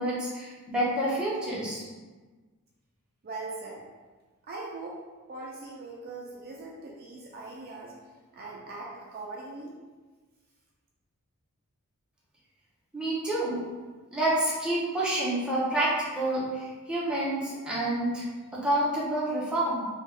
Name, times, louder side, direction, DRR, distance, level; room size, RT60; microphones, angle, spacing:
voice 1, 0.0-1.8 12.9-13.6 14.1-18.3 18.5-19.9, right 1 dB, 5° right, -8 dB, 0.8 m, -28 dB
voice 2, 3.2-3.8 4.4-5.0 5.3-7.9 8.3-9.7, right 3 dB, 45° right, -2 dB, 0.4 m, -40 dB
3.4 x 2.3 x 3.2 m, 1.3 s
head